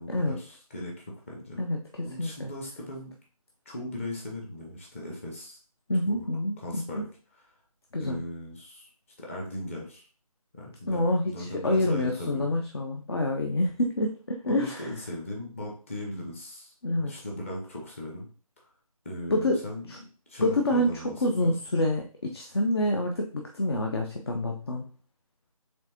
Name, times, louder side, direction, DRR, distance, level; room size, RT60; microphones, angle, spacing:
voice 1, 0.0-1.6 2.0-3.1 3.7-5.6 6.1-6.3 6.6-7.1 8.0-8.9 9.2-10.0 10.5-12.5 14.5-18.3 19.0-19.9 20.3-21.5, left 1 dB, 20° left, -1 dB, 0.9 m, -38 dB
voice 2, 1.6-2.5 5.9-7.0 7.9-8.2 10.9-14.9 16.8-17.1 19.3-19.6 19.9-20.0 20.4-24.9, left 1 dB, 45° left, 2 dB, 0.5 m, -27 dB
4.4 x 3.5 x 2.9 m, 0.38 s
figure-of-eight pair, 165°, 19 cm